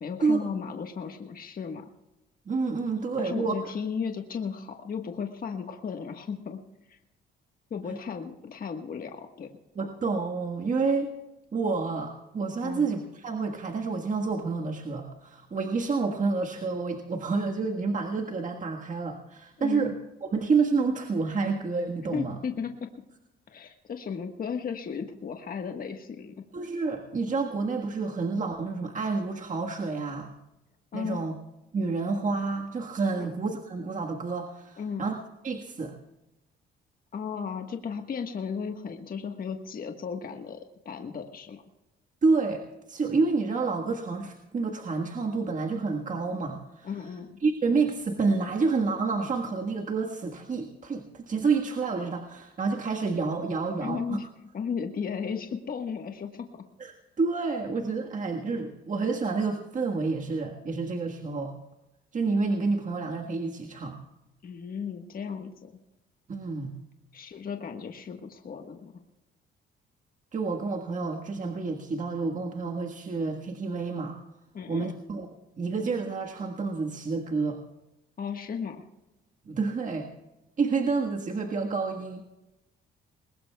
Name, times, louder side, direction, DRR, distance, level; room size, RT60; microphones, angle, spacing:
voice 1, 0.0-1.8 3.2-6.6 6.9-7.0 7.7-9.5 12.6-12.9 19.6-19.9 22.1-22.9 23.5-26.3 30.9-31.2 33.2-33.3 34.8-35.1 37.1-41.6 46.8-47.4 53.8-54.2 54.5-56.5 64.4-65.8 67.1-68.9 74.5-74.9 78.2-78.8, left 6 dB, 45° left, 4 dB, 1.4 m, -35 dB
voice 2, 2.5-3.5 7.9-8.0 9.7-11.1 11.5-19.9 20.2-22.4 26.5-30.3 30.9-31.3 31.7-35.1 35.4-36.0 42.2-42.6 42.9-46.9 47.4-54.2 56.8-56.9 57.2-61.5 62.1-64.0 66.3-66.7 70.3-74.2 74.7-75.3 75.6-77.6 79.4-80.1 80.6-82.2, right 4 dB, 40° right, 2 dB, 1.6 m, -29 dB
21.5 x 19.5 x 2.3 m, 0.99 s
cardioid pair, 90°, 20 cm